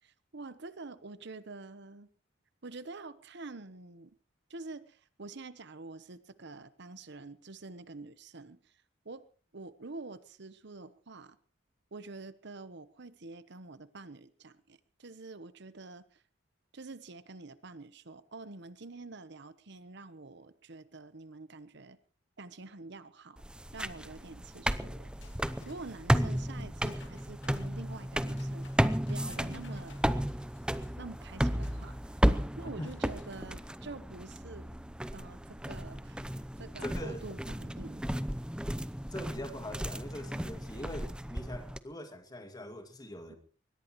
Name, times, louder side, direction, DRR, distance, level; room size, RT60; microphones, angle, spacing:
voice 1, 0.0-2.1 2.6-4.1 4.5-9.2 9.5-11.4 11.9-16.2 16.7-22.0 22.4-23.4 23.7-25.1 25.7-28.7 29.1-30.0 31.0-32.2 32.6-34.7 35.1-38.1 43.3-43.4, right 3 dB, 60° right, 13 dB, 1.0 m, -47 dB
sound 1, 23.4-41.8, equal, 5° right, 0.7 m, -34 dB
sound 2, 25.2-32.0 32.6-33.6, left 4 dB, 65° left, 2.1 m, -60 dB
voice 2, 36.8-37.2 39.1-43.4, left 1 dB, 20° left, 7 dB, 2.3 m, -42 dB
22.5 x 20.0 x 3.1 m, 0.40 s
head